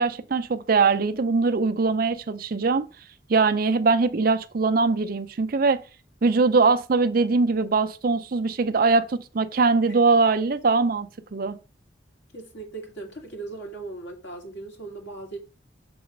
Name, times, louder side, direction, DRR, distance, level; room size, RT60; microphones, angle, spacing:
voice 1, 0.0-2.8 3.3-5.8 6.2-11.6, right 4 dB, 50° right, 0.5 m, -22 dB
voice 2, 12.3-15.4, right 3 dB, 70° left, 2.3 m, -38 dB
6.9 x 3.9 x 5.1 m
head